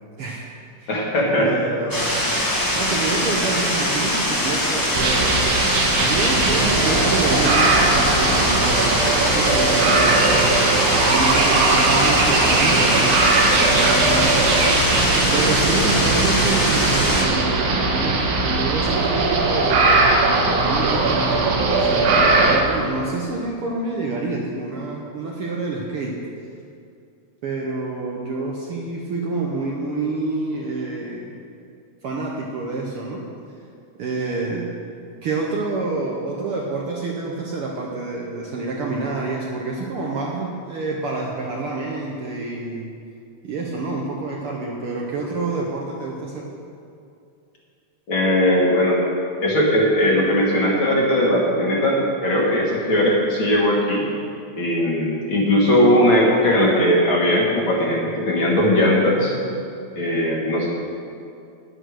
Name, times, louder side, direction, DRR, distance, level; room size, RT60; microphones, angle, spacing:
voice 1, 0.2-0.5 0.8-0.9 1.4-2.2 2.8-5.5 6.0-7.7 8.1-10.7 11.1-14.9 15.3-26.2 27.4-31.3 32.0-33.2 34.0-34.7 35.2-42.9 43.4-46.5, right 3 dB, 65° right, -2 dB, 1.5 m, -28 dB
voice 2, 0.9-1.5 48.1-49.0 49.4-54.0 54.6-59.3 60.0-60.7, left 1 dB, 50° left, -3 dB, 2.0 m, -19 dB
sound 1, 1.9-17.2, equal, 15° left, 0.7 m, -22 dB
sound 2, 4.9-22.6, right 3 dB, 85° right, 2.7 m, -19 dB
10.0 x 8.1 x 6.4 m, 2.5 s
omnidirectional pair, 3.3 m